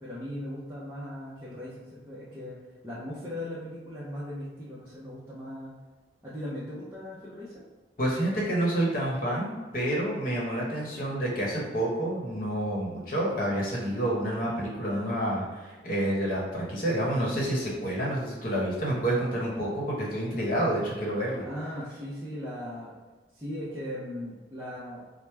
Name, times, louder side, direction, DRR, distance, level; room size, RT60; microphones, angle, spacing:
voice 1, 0.0-2.6 2.8-5.8 6.2-7.6 21.4-23.0 23.3-25.0, left 1 dB, 15° right, -10 dB, 0.6 m, -38 dB
voice 2, 8.0-21.4, right 1 dB, 45° left, -4 dB, 1.0 m, -29 dB
4.6 x 2.1 x 3.3 m, 1.3 s
head